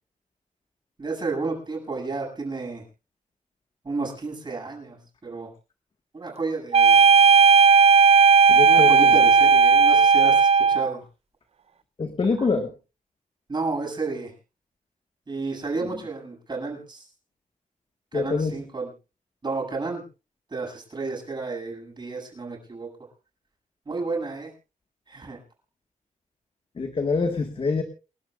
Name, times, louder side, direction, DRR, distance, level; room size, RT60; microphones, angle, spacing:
voice 1, 1.0-2.8 3.8-5.5 6.1-7.0 8.7-11.0 12.4-12.5 13.5-14.3 15.3-17.0 18.1-18.9 19.4-20.0 20.5-22.9 23.9-24.5 25.1-25.4, right 3 dB, 35° right, 0 dB, 8.0 m, -31 dB
sound 1, 6.7-10.9, right 5 dB, 50° right, 0.7 m, -15 dB
voice 2, 8.5-9.1 12.0-12.7 18.1-18.5 26.8-27.8, left 4 dB, 45° left, 6 dB, 1.7 m, -25 dB
29.5 x 12.0 x 2.5 m, 0.32 s
wide cardioid pair, 145°, 13 cm